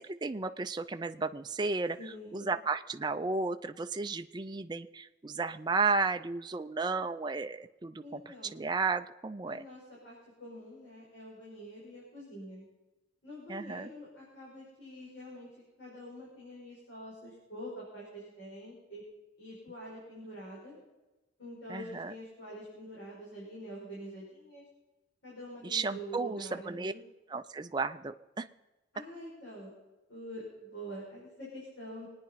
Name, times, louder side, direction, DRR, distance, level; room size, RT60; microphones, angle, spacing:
voice 1, 0.0-2.0 2.3-9.6 13.5-13.9 21.7-22.1 25.6-26.9 27.3-28.5, right 4 dB, 20° right, 7 dB, 0.4 m, -33 dB
voice 2, 2.0-2.6 8.0-8.5 9.5-12.6 13.2-15.5 15.8-19.0 19.4-20.8 21.4-24.6 25.2-27.0 28.9-29.7 30.1-32.1, equal, 70° left, -6 dB, 6.0 m, -46 dB
24.0 x 9.6 x 5.6 m, 1.1 s
head